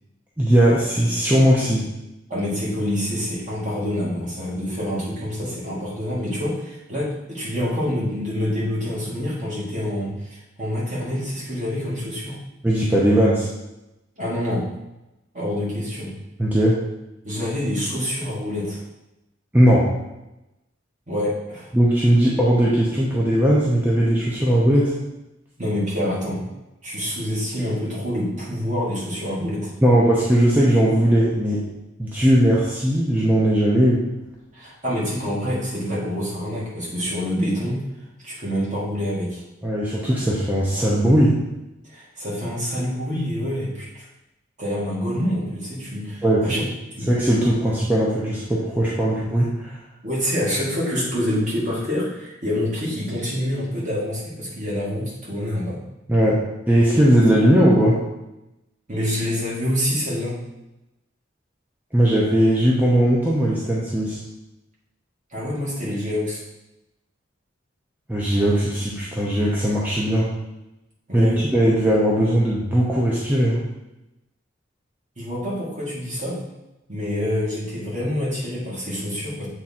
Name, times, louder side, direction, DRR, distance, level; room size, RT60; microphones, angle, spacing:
voice 1, 0.4-1.9 12.6-13.5 16.4-16.8 19.5-19.9 21.7-24.9 29.8-31.6 32.0-34.0 39.6-41.4 46.2-46.4 47.1-49.7 56.1-56.4 56.7-58.0 61.9-64.2 68.1-70.3 71.1-73.6, right 1 dB, 10° right, -6 dB, 0.8 m, -18 dB
voice 2, 2.3-12.4 14.2-14.7 15.3-16.1 17.2-18.8 21.1-21.7 25.6-26.4 26.8-29.7 34.5-37.8 38.2-39.4 41.9-44.1 44.6-46.6 47.0-47.1 50.0-55.8 58.9-60.4 65.3-66.4 71.1-71.4 75.2-76.4 76.9-79.5, left 1 dB, 40° right, -6 dB, 2.1 m, -26 dB
7.5 x 3.6 x 4.3 m, 0.95 s
head